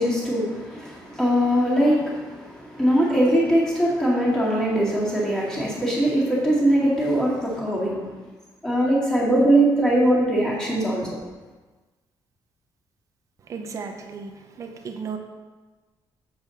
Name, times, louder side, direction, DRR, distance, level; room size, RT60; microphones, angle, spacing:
voice 1, 0.0-8.2 8.6-11.2, right 1 dB, 5° left, -6 dB, 2.1 m, -21 dB
voice 2, 13.4-15.2, right 5 dB, 35° right, 4 dB, 0.7 m, -35 dB
7.3 x 7.1 x 4.1 m, 1.3 s
cardioid pair, 175°, 9 cm